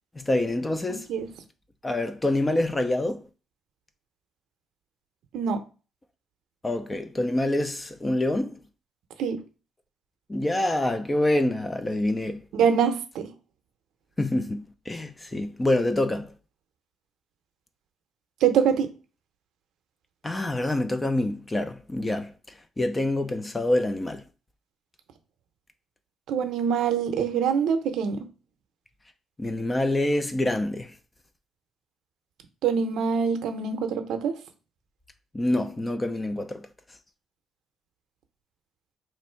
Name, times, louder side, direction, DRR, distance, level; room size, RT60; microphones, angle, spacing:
voice 1, 0.1-1.1 1.8-3.2 6.6-8.6 10.3-12.5 14.2-16.3 20.2-24.2 29.4-30.9 35.3-36.7, left 1 dB, 20° left, 0.5 m, -26 dB
voice 2, 12.5-13.3 18.4-18.9 26.3-28.3 32.6-34.3, right 7 dB, 80° right, 0.6 m, -24 dB
3.1 x 2.6 x 4.4 m
cardioid pair, 90°, 0 cm